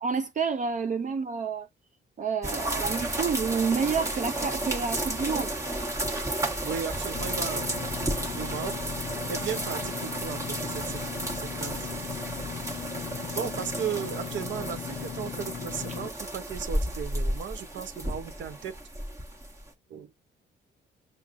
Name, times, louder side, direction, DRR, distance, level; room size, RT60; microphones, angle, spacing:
voice 1, 0.0-1.7 2.2-5.5, right 5 dB, 40° right, 0.5 m, -29 dB
sound 1, 2.4-19.7, right 1 dB, 15° right, 1.1 m, -33 dB
voice 2, 6.6-7.7 8.4-8.7 9.3-11.0 11.4-12.0 13.3-18.7 19.9-20.1, right 8 dB, 70° right, 0.9 m, -36 dB
Engine / Mechanisms, 7.1-16.1, left 8 dB, 40° left, 0.4 m, -38 dB
5.9 x 2.1 x 2.5 m
cardioid pair, 90°, 20 cm